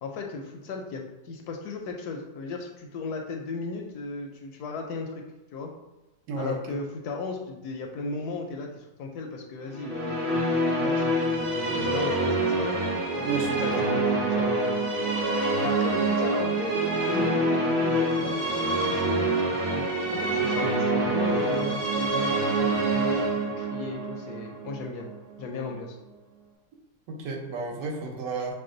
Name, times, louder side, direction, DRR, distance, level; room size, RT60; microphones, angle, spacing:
voice 1, 0.0-5.2 5.5-5.7 6.4-12.8 13.1-13.3 13.6-14.5 15.6-23.2 23.6-25.1 25.4-26.0, left 3 dB, 75° left, 2 dB, 1.0 m, -36 dB
voice 2, 6.3-6.8 13.2-13.9 27.1-28.5, right 4 dB, 75° right, 1 dB, 1.4 m, -32 dB
Musical instrument, 9.7-25.2, right 2 dB, 35° right, 1.1 m, -26 dB
5.9 x 2.2 x 3.8 m, 1.0 s
omnidirectional pair, 1.9 m